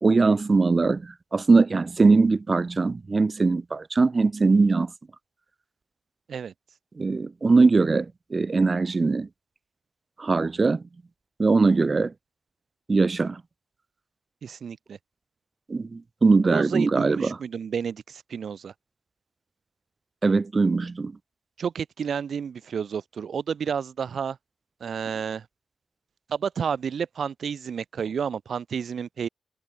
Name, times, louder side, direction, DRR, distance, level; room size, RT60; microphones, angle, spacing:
voice 1, 0.0-4.9 7.0-9.3 10.2-10.8 11.4-12.1 12.9-13.4 15.7-17.4 20.2-21.1, right 3 dB, 40° right, 1.5 m, -21 dB
voice 2, 14.4-15.0 16.4-18.7 21.6-24.4 24.8-25.5 26.3-29.3, right 7 dB, 70° right, 3.7 m, -30 dB
cardioid pair, 55°, 0 cm